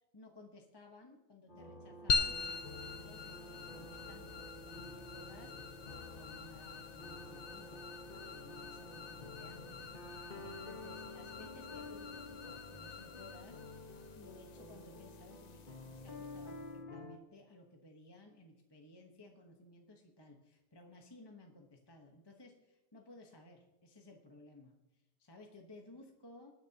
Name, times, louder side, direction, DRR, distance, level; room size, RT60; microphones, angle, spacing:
voice 1, 0.1-7.8 8.3-26.5, left 2 dB, 20° left, 2 dB, 1.0 m, -58 dB
sound 1, 1.5-17.2, left 1 dB, 35° left, 1.4 m, -50 dB
sound 2, 2.1-16.8, left 5 dB, 75° left, 0.3 m, -43 dB
19.5 x 10.0 x 2.9 m, 0.98 s
omnidirectional pair, 1.5 m